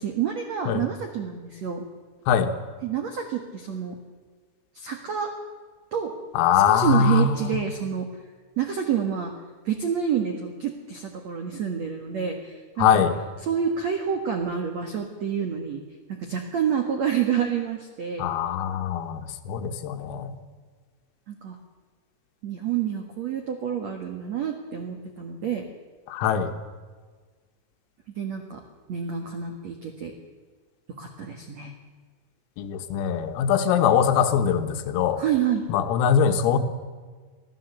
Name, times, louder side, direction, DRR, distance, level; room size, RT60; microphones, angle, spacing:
voice 1, 0.0-1.8 2.8-4.0 4.7-5.3 5.9-6.1 6.5-8.1 8.6-9.3 9.6-13.0 13.4-15.8 16.1-18.2 21.3-21.6 22.4-25.7 28.1-28.6 28.9-30.1 31.0-31.7 35.2-35.7, right 8 dB, 80° right, 4 dB, 1.5 m, -28 dB
voice 2, 6.4-7.6 12.8-13.1 18.2-20.3 26.1-26.5 32.6-35.2 35.7-36.6, left 7 dB, 85° left, 7 dB, 4.1 m, -22 dB
24.0 x 15.0 x 8.2 m, 1.5 s
omnidirectional pair, 6.0 m